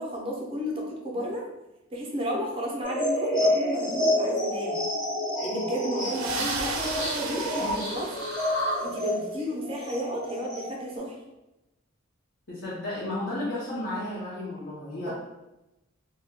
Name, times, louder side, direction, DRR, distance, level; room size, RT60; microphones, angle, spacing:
voice 1, 0.0-1.4 1.9-4.8 5.4-8.1 8.8-11.2 15.1-15.2, equal, 25° right, -1 dB, 0.5 m, -33 dB
sound 1, 2.8-10.9, left 1 dB, 20° left, 0.6 m, -28 dB
sound 2, 6.0-9.0, right 5 dB, 85° right, 0.4 m, -35 dB
voice 2, 7.6-8.0 12.5-15.1, left 1 dB, 60° left, -9 dB, 0.7 m, -33 dB
2.2 x 2.1 x 3.4 m, 0.97 s
head